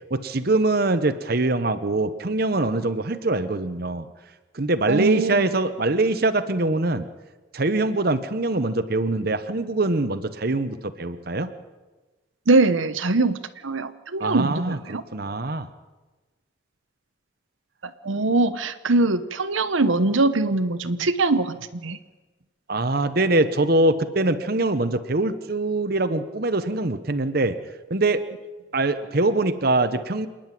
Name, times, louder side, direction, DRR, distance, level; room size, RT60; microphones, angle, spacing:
voice 1, 0.1-4.1 4.5-7.1 7.5-11.5 14.2-15.7 22.7-27.6 27.9-28.2 28.7-30.3, right 2 dB, 50° right, 10 dB, 1.0 m, -23 dB
voice 2, 4.9-5.5 12.5-15.0 17.8-22.0, right 3 dB, 80° right, 11 dB, 1.0 m, -22 dB
27.5 x 10.5 x 9.2 m, 1.2 s
head